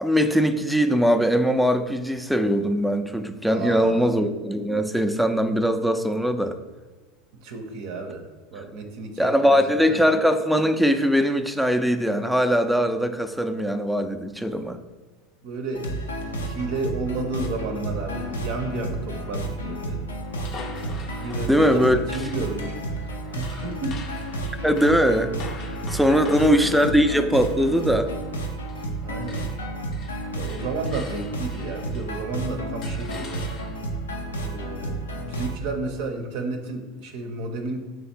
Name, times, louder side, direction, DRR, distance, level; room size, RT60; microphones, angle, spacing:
voice 1, 0.0-6.6 8.6-8.7 9.2-14.8 21.5-22.0 24.6-25.3 25.9-28.1, equal, ahead, 8 dB, 0.4 m, -21 dB
voice 2, 3.5-4.1 7.4-9.6 9.9-10.0 15.4-15.9 16.3-20.0 21.1-24.2 26.1-26.6 29.0-29.5 30.3-33.5 34.4-37.9, right 3 dB, 65° right, 4 dB, 0.6 m, -32 dB
sound 1, 15.7-35.6, right 1 dB, 85° left, 0.5 m, -31 dB
sound 2, 20.3-29.0 29.2-32.3 32.8-34.0, left 5 dB, 45° left, 0.6 m, -44 dB
3.7 x 3.2 x 4.3 m, 1.3 s
hypercardioid pair, 80°, 0 cm